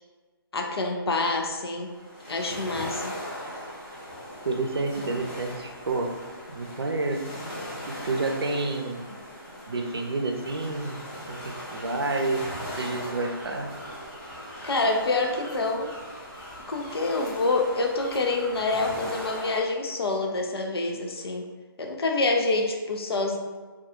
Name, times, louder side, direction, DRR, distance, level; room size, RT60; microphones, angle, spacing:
voice 1, 0.5-1.9 2.3-3.1 14.6-15.9 16.7-21.5 21.8-23.4, left 3 dB, 80° left, 2 dB, 0.4 m, -27 dB
sound 1, 1.7-19.6, equal, 20° left, 0.7 m, -39 dB
voice 2, 4.4-6.1 6.5-7.2 7.9-9.2 9.7-13.7, right 3 dB, 85° right, 3 dB, 0.5 m, -29 dB
2.3 x 2.2 x 2.9 m, 1.4 s
figure-of-eight pair, 150°, 13 cm